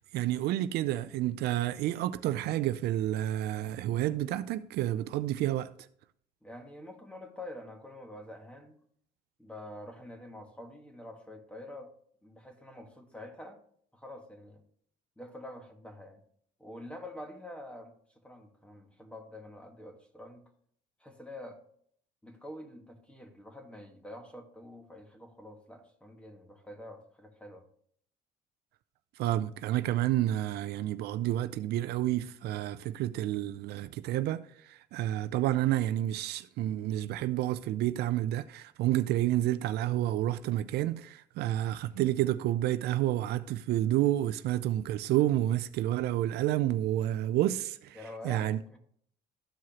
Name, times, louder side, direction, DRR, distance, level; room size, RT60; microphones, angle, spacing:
voice 1, 0.1-5.7 29.2-48.0 48.2-48.6, right 13 dB, 75° right, 0.4 m, -29 dB
voice 2, 6.4-8.7 9.4-11.9 12.2-13.6 13.9-14.6 15.2-16.2 16.6-17.9 18.2-20.5 21.0-21.6 22.2-27.7 47.9-48.8, left 1 dB, 5° left, 1.4 m, -46 dB
13.5 x 4.7 x 2.9 m
cardioid pair, 110°, 17 cm